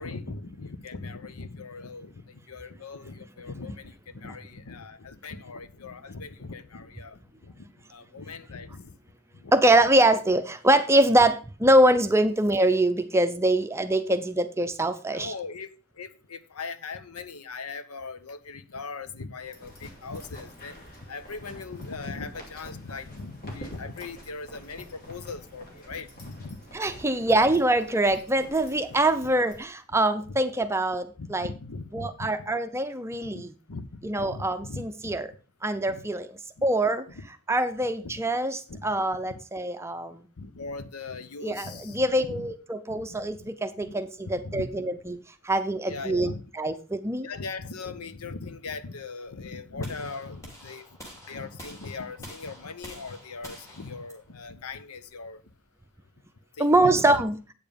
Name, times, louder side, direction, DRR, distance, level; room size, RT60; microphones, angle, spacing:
voice 1, 0.0-8.9 9.4-9.5 15.1-15.7 16.0-20.8 21.1-26.6 26.9-27.3 30.3-30.4 31.2-32.1 33.3-33.4 33.7-35.2 35.9-36.0 36.6-36.7 37.1-37.2 38.0-38.2 38.7-38.9 39.3-39.4 40.4-42.5 42.9-43.5 43.8-45.2 45.9-46.4 47.2-50.8 51.3-55.4 56.6-57.2, left 4 dB, 85° left, 0.9 m, -39 dB
voice 2, 9.5-15.3 26.7-31.5 31.9-33.5 34.0-35.3 35.6-37.0 37.5-40.3 41.4-45.2 45.4-47.3 56.6-57.3, right 1 dB, 10° right, 0.6 m, -24 dB
sound 1, 19.3-29.6, equal, 45° left, 2.7 m, -48 dB
sound 2, 49.8-55.9, equal, 15° left, 2.9 m, -48 dB
8.6 x 7.1 x 5.2 m
head